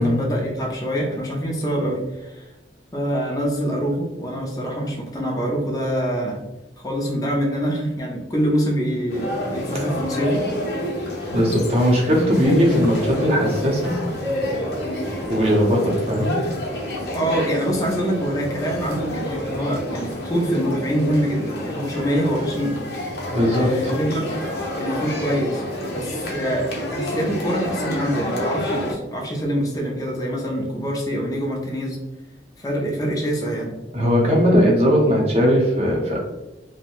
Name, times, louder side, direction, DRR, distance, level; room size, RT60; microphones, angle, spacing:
voice 1, 0.0-2.5 2.9-6.4 6.8-10.4 17.1-22.8 23.4-24.3 24.8-25.6 25.9-32.0 32.6-33.7, equal, 20° left, -2 dB, 0.4 m, -25 dB
sound 1, 9.1-28.9, left 1 dB, 60° left, 0.6 m, -28 dB
voice 2, 11.3-13.9 15.3-16.4 23.3-23.9 33.9-36.2, equal, 35° right, -2 dB, 0.6 m, -19 dB
2.6 x 2.1 x 2.9 m, 1.0 s
head